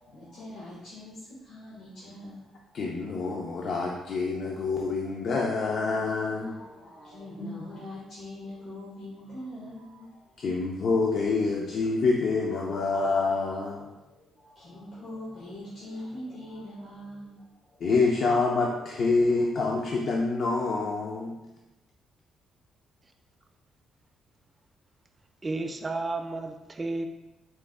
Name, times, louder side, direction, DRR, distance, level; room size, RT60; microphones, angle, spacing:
voice 1, 0.0-2.8 4.9-10.6 11.3-11.7 12.6-12.9 13.8-17.8 18.9-19.5, left 1 dB, 85° left, -8 dB, 1.2 m, -44 dB
voice 2, 2.7-6.6 7.4-7.5 10.4-13.9 17.8-21.4, left 3 dB, 60° left, 0 dB, 0.4 m, -27 dB
voice 3, 25.4-27.1, right 2 dB, 25° right, 6 dB, 0.3 m, -32 dB
4.1 x 2.0 x 3.4 m, 1.0 s
cardioid pair, 90°, 0 cm